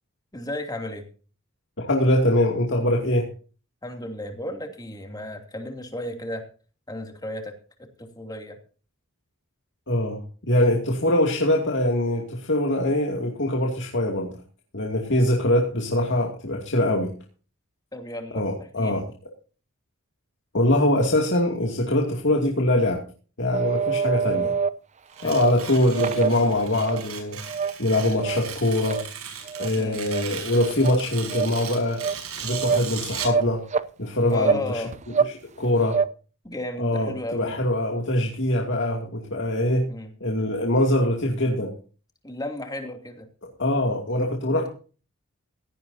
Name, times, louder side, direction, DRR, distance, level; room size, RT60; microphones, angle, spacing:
voice 1, 0.3-1.0 3.8-6.4 6.9-7.5 8.0-8.6 17.9-19.0 24.3-24.5 25.2-25.4 29.7-30.0 34.3-34.9 36.4-37.5 39.9-40.1 42.2-43.3, left 1 dB, 20° left, 4 dB, 2.8 m, -34 dB
voice 2, 1.8-3.3 9.9-14.3 14.7-17.1 18.3-19.0 20.5-23.0 23.4-24.5 25.2-27.4 27.8-29.0 29.6-32.0 32.3-33.6 34.0-34.8 35.2-36.0 36.8-39.9 40.2-41.7 43.4-44.7, left 1 dB, 55° left, 0 dB, 2.6 m, -23 dB
sound 1, 23.5-24.7 25.2-25.5 25.9-27.0 27.4-27.7 28.1-28.4 28.8-29.0 29.4-29.7 30.1-30.2 30.6-31.0 31.3-31.5 31.9-32.1 32.5-32.9 33.2-33.9 34.4-34.6 34.9-35.3 35.6-36.1, right 6 dB, 35° right, 0.7 m, -25 dB
Tearing, 25.1-33.4, right 7 dB, 85° right, 5.9 m, -37 dB
17.5 x 13.5 x 2.8 m, 0.38 s
head